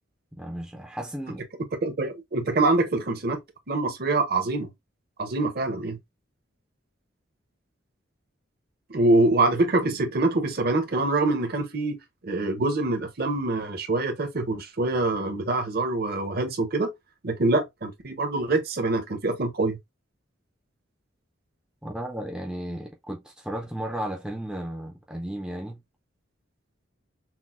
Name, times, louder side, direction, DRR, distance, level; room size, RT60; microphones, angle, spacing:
voice 1, 0.3-1.4 21.8-25.8, right 1 dB, 5° right, 0.4 m, -34 dB
voice 2, 1.8-3.4 3.7-4.7 5.2-6.0 8.9-12.0 12.2-16.9 17.2-19.8, right 2 dB, 45° right, 0.7 m, -25 dB
5.9 x 2.0 x 2.4 m
head